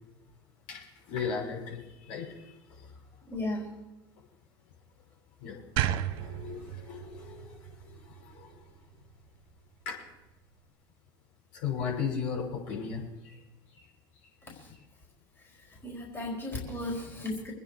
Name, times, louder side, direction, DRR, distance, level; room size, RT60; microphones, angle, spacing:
voice 1, 0.7-2.9 5.4-5.6 5.9-8.7 9.8-10.0 11.5-13.4 13.7-13.9, left 6 dB, 60° left, -3 dB, 6.4 m, -37 dB
voice 2, 3.3-3.7 14.5-14.7 15.8-17.5, left 2 dB, 20° left, -2 dB, 4.7 m, -35 dB
sound 1, 5.8-8.9, right 12 dB, 60° right, 1.0 m, -34 dB
24.5 x 9.7 x 4.9 m, 1.0 s
hypercardioid pair, 75°, 12 cm